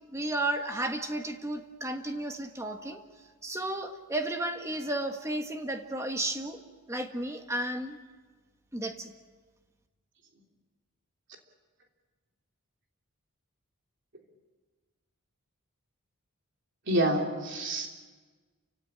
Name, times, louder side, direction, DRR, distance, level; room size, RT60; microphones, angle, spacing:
voice 1, 0.1-3.0 3.4-6.6 6.9-8.0 8.7-9.1, right 1 dB, 15° right, 5 dB, 1.5 m, -33 dB
voice 2, 16.9-17.9, right 1 dB, 55° right, 1 dB, 3.4 m, -27 dB
29.0 x 16.5 x 8.8 m, 1.4 s
head